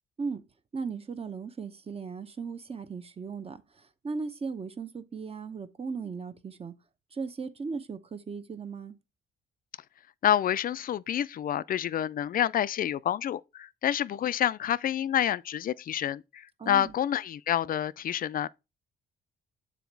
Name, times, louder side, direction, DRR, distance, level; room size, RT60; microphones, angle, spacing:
voice 1, 0.7-6.7 7.1-9.0 16.6-16.9, right 5 dB, 30° right, 0.8 m, -37 dB
voice 2, 10.2-18.5, left 10 dB, 45° left, 0.4 m, -28 dB
7.1 x 4.1 x 4.6 m
cardioid pair, 90°, 20 cm